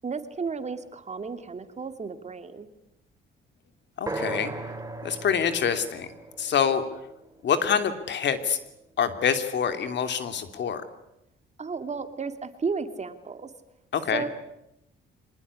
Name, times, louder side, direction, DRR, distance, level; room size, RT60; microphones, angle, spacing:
voice 1, 0.0-2.7 11.6-13.5 14.1-14.3, right 5 dB, 35° right, 9 dB, 2.6 m, -33 dB
voice 2, 4.0-4.5 5.0-6.1 6.4-6.8 7.4-8.6 9.0-10.8 13.9-14.2, left 7 dB, 65° left, 9 dB, 2.9 m, -26 dB
sound 1, 4.1-8.0, right 2 dB, 15° right, 3.6 m, -37 dB
24.5 x 20.0 x 9.7 m, 0.85 s
cardioid pair, 90°, 20 cm